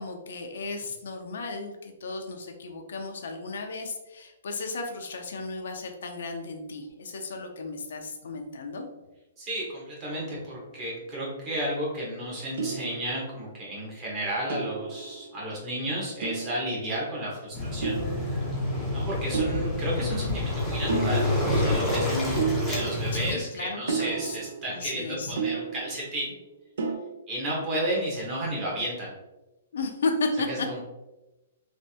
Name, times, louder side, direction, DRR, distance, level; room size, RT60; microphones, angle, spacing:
voice 1, 0.0-8.9 23.1-24.3 24.7-25.4 29.7-30.7, left 3 dB, 75° left, 4 dB, 0.5 m, -34 dB
voice 2, 9.4-18.0 18.9-22.4 22.7-26.3 27.3-29.1 30.5-30.8, right 1 dB, 25° right, -5 dB, 1.0 m, -32 dB
sound 1, 10.1-11.1 12.6-13.6 14.5-15.7 16.2-17.1 17.8-18.8 19.3-20.6 20.9-21.9 22.4-23.4 23.9-26.3 26.8-26.9, right 5 dB, 70° right, 0.5 m, -33 dB
Waves surf, 17.5-23.3, left 2 dB, 5° left, 0.6 m, -28 dB
3.2 x 2.5 x 2.8 m, 1.0 s
hypercardioid pair, 165°, 0 cm